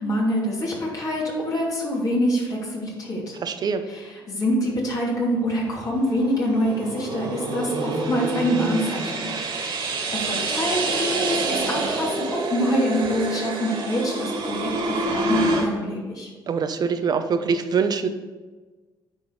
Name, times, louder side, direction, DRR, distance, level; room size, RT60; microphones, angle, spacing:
voice 1, 0.0-3.4 3.9-9.1 9.5-16.3, equal, 45° left, -4 dB, 2.8 m, -26 dB
voice 2, 3.4-3.8 16.5-18.1, right 5 dB, 50° right, 9 dB, 0.8 m, -23 dB
sound 1, 5.5-15.7, right 2 dB, 65° right, 2.2 m, -27 dB
9.9 x 3.9 x 6.5 m, 1.3 s
cardioid pair, 85°, 9 cm